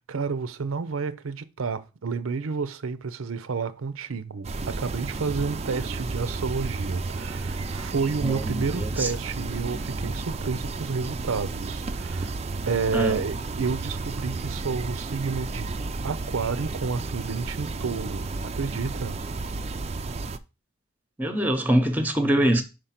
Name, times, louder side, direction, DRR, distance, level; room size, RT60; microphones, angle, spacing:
voice 1, 0.0-12.3 12.6-15.7 16.0-19.2, right 5 dB, 85° right, 0.6 m, -30 dB
sound 1, 4.4-20.4, right 3 dB, 30° right, 0.4 m, -32 dB
voice 2, 8.2-9.1 12.9-13.2 21.2-22.6, right 1 dB, 10° right, 0.8 m, -24 dB
5.2 x 5.1 x 5.7 m
head